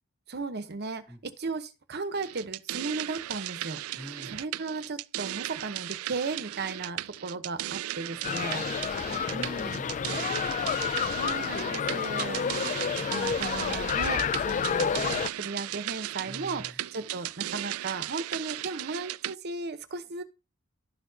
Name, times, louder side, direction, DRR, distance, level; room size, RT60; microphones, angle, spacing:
voice 1, 0.3-3.8 4.3-8.6 9.3-9.8 11.1-20.2, right 3 dB, 50° right, 0.9 m, -36 dB
sound 1, 2.2-19.4, right 15 dB, 85° right, 0.3 m, -36 dB
voice 2, 3.9-4.4 8.1-10.9 16.2-16.8, equal, 10° left, 1.6 m, -46 dB
sound 2, 8.2-15.3, left 7 dB, 35° left, 0.3 m, -30 dB
12.0 x 5.7 x 2.8 m
head